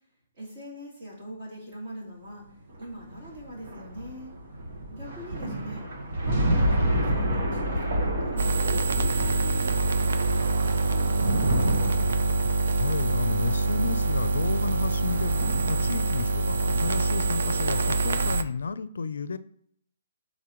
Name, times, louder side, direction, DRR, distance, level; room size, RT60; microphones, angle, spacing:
voice 1, 0.3-2.4 2.8-4.3 4.9-5.8 6.2-8.5 8.9-11.9, equal, 35° right, -5 dB, 3.3 m, -42 dB
sound 1, 2.7-16.3, right 1 dB, 50° right, 1.4 m, -30 dB
sound 2, 8.4-18.4, right 3 dB, 70° right, 0.6 m, -25 dB
voice 2, 12.7-19.4, left 5 dB, 90° left, 14 dB, 0.5 m, -32 dB
12.0 x 4.1 x 3.1 m, 0.67 s
hypercardioid pair, 175°, 0 cm